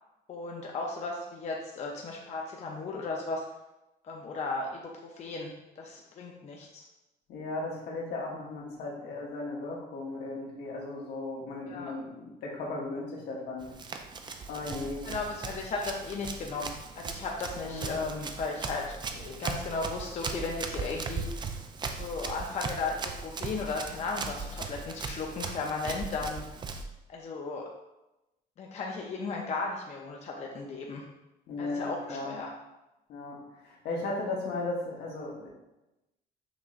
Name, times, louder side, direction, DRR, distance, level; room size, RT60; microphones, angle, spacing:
voice 1, 0.3-3.4 4.0-6.8 11.7-11.9 15.0-21.4 21.9-26.4 27.1-27.7 28.6-31.0 31.6-32.5, left 3 dB, 40° left, -1 dB, 0.6 m, -35 dB
voice 2, 7.3-13.7 14.5-15.0 17.6-18.0 31.5-32.4 33.1-35.5, left 2 dB, 75° left, -2 dB, 1.2 m, -36 dB
Run, 13.6-26.8, right 4 dB, 25° right, 0.4 m, -38 dB
5.9 x 2.9 x 2.5 m, 0.96 s
cardioid pair, 110°, 17 cm